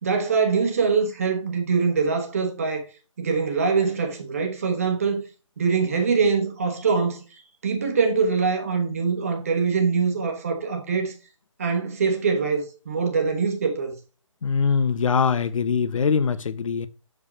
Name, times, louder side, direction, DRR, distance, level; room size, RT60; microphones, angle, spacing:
voice 1, 0.0-2.8 3.2-5.2 5.6-7.2 7.6-11.1 11.6-13.9, right 5 dB, 25° right, 1.1 m, -23 dB
voice 2, 14.4-16.9, left 6 dB, 75° left, 0.6 m, -22 dB
6.7 x 4.9 x 4.3 m
hypercardioid pair, 175°, 17 cm